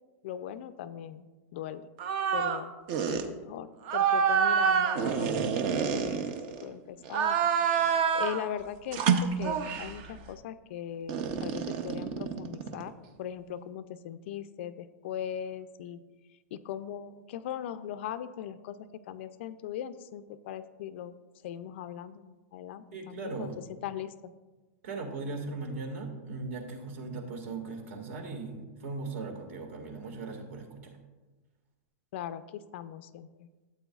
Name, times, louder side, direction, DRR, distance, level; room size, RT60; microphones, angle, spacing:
voice 1, 0.2-1.3 1.5-1.8 2.3-2.7 3.1-6.3 6.6-7.4 8.1-12.9 13.2-16.0 16.5-21.1 21.4-23.5 23.8-24.3 32.1-33.5, left 10 dB, 50° left, 13 dB, 0.4 m, -39 dB
sound 1, 2.0-2.6 2.9-3.2 3.9-6.6 7.1-8.4 8.9-10.0 11.1-12.9, right 7 dB, 35° right, 0.7 m, -27 dB
voice 2, 22.9-23.7 24.8-31.0, right 3 dB, 55° right, 4 dB, 1.9 m, -38 dB
13.0 x 8.3 x 2.4 m, 1.2 s
supercardioid pair, 170°, 8 cm